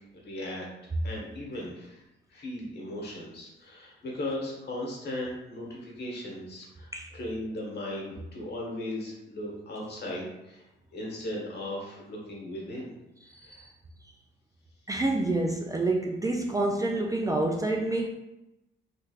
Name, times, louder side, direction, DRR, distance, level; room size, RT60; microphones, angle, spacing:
voice 1, 0.1-2.0 2.3-10.7 10.9-12.9 13.4-13.7, left 1 dB, 55° left, -3 dB, 1.3 m, -37 dB
voice 2, 13.3-13.7 14.9-18.1, right 2 dB, 15° right, 1 dB, 0.3 m, -28 dB
3.3 x 3.2 x 2.4 m, 0.94 s
cardioid pair, 90°, 20 cm